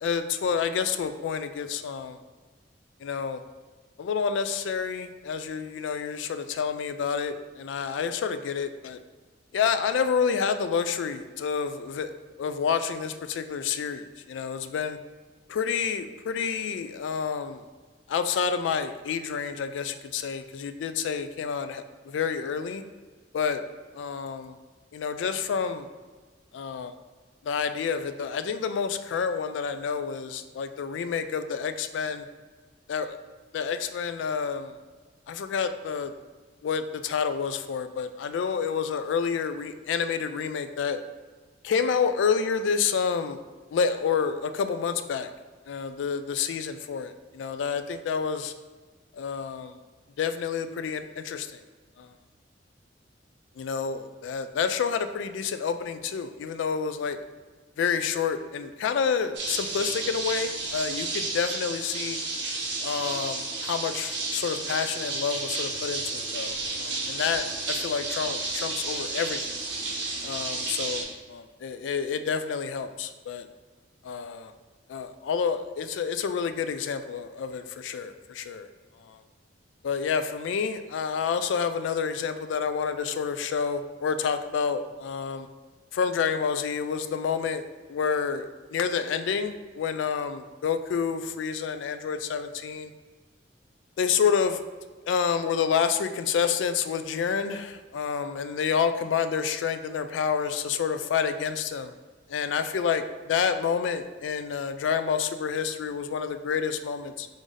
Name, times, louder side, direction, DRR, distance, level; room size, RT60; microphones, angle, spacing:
voice 1, 0.0-2.2 3.0-3.4 4.0-9.0 9.5-12.1 12.4-15.0 15.5-17.7 18.1-22.8 23.3-23.6 23.9-24.6 24.9-25.9 26.5-26.9 27.4-32.3 32.9-33.2 33.5-34.7 35.3-36.1 36.6-41.0 41.6-43.4 43.7-45.3 45.7-48.5 49.1-49.8 50.2-51.6 52.0-52.1 53.6-57.2 57.8-62.2 62.8-69.4 70.2-73.5 74.0-74.5 74.9-78.7 79.0-79.2 79.8-85.5 85.9-87.6 87.9-92.9 94.0-94.6 95.1-101.9 102.3-107.3, left 6 dB, 75° left, 10 dB, 0.3 m, -29 dB
sound 1, 59.3-71.0, right 3 dB, 65° right, 0.9 m, -32 dB
3.9 x 2.6 x 4.8 m, 1.4 s
head